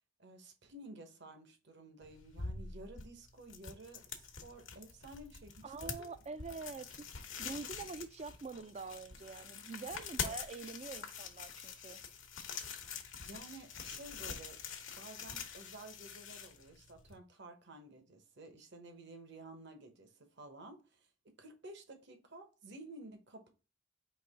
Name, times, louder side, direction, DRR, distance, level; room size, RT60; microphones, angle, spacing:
voice 1, 0.2-6.1 13.2-14.6 15.0-23.5, right 2 dB, 60° right, 1.0 m, -53 dB
sound 1, 2.0-17.2, left 6 dB, 75° left, 1.0 m, -45 dB
voice 2, 5.6-12.0, right 4 dB, 30° right, 0.4 m, -45 dB
4.7 x 3.0 x 3.4 m
head